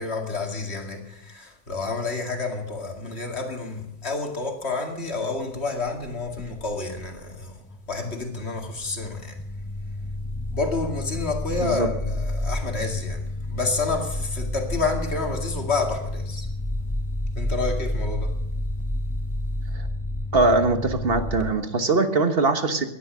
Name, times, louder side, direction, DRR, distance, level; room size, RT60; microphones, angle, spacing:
voice 1, 0.0-7.6 7.9-9.4 10.5-16.5 17.4-18.4, left 3 dB, 55° left, 2.6 m, -29 dB
sound 1, 5.9-7.4 7.7-21.5, left 1 dB, 10° left, 0.5 m, -30 dB
voice 2, 20.3-22.8, right 3 dB, 50° right, 1.5 m, -21 dB
17.5 x 11.5 x 6.2 m
omnidirectional pair, 1.3 m